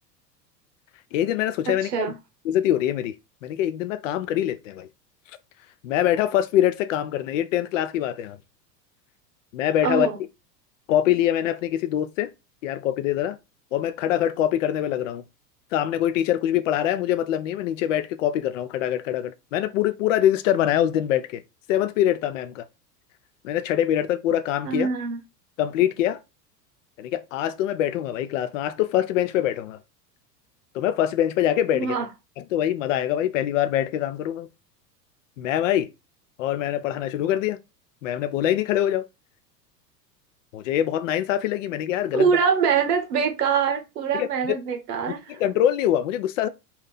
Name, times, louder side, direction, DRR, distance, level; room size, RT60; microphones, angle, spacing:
voice 1, 1.1-2.1 2.4-3.1 3.4-4.9 5.8-8.4 9.5-10.1 10.9-12.3 12.6-13.4 13.7-15.2 15.7-21.4 21.7-22.6 23.4-24.9 25.6-26.2 27.0-29.8 30.7-32.0 32.4-34.5 35.4-35.9 36.4-37.6 38.0-39.1 40.5-42.3 44.1-44.3 45.3-46.5, left 11 dB, 50° left, 0.5 m, -24 dB
voice 2, 1.7-2.1 9.8-10.2 24.6-25.2 31.7-32.1 42.1-45.4, right 6 dB, 65° right, 0.9 m, -24 dB
2.8 x 2.4 x 3.9 m
figure-of-eight pair, 85°, 50 cm